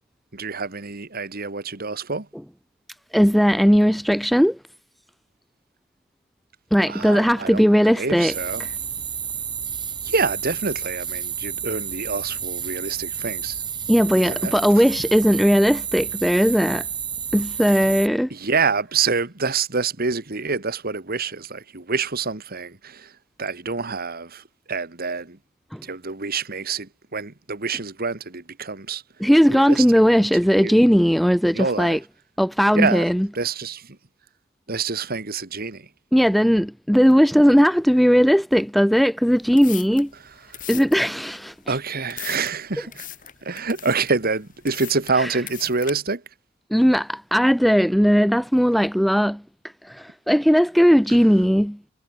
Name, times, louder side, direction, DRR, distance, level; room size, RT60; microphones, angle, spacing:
voice 1, 0.3-2.3 6.9-8.6 10.0-13.6 14.2-14.8 18.3-23.1 23.4-25.4 25.8-29.0 29.5-29.9 30.6-30.8 31.5-32.0 32.7-34.0 34.7-35.9 40.5-40.6 41.7-43.1 43.4-46.2, right 4 dB, 45° right, 1.8 m, -27 dB
voice 2, 3.1-4.6 6.7-8.3 8.6-8.7 13.9-16.9 17.3-18.3 25.7-25.8 29.2-32.0 32.4-33.3 36.1-40.1 40.7-41.5 45.2-45.3 46.7-49.4 49.8-51.8, equal, ahead, 0.5 m, -18 dB
sound 1, 8.3-18.1, right 8 dB, 20° right, 3.3 m, -30 dB
sound 2, 39.3-45.9, left 11 dB, 40° left, 3.9 m, -40 dB
head